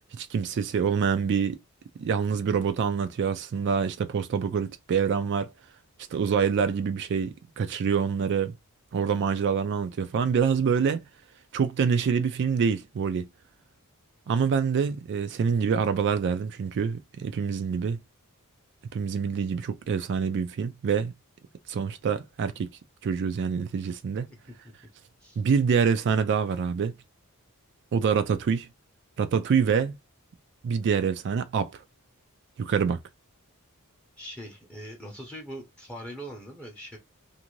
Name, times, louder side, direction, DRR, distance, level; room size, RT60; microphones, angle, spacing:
voice 1, 0.1-1.6 2.0-5.5 6.1-8.5 8.9-11.0 11.5-13.3 14.3-18.0 18.9-21.1 21.7-22.7 23.0-24.3 25.4-26.9 27.9-28.7 29.2-29.9 30.6-31.7 32.6-33.0, right 6 dB, 55° right, 0.3 m, -26 dB
voice 2, 34.2-37.0, equal, 5° left, 0.7 m, -41 dB
2.6 x 2.5 x 3.0 m
head